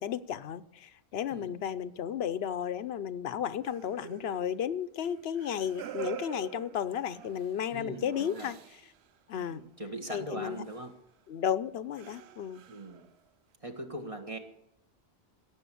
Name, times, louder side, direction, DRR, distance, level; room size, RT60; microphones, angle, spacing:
voice 1, 0.0-8.6 9.3-9.6 10.1-10.6 11.3-12.6, left 9 dB, 75° left, 13 dB, 0.9 m, -33 dB
voice 2, 1.3-1.6 7.7-8.5 9.3-10.9 12.7-13.0 13.6-14.4, right 1 dB, 35° right, 4 dB, 1.7 m, -41 dB
sound 1, 3.7-9.1 9.4-9.6 10.7-10.8 11.5-11.6 12.0-13.3, right 11 dB, 90° right, 1.0 m, -46 dB
17.0 x 7.4 x 8.4 m, 0.79 s
omnidirectional pair, 1.1 m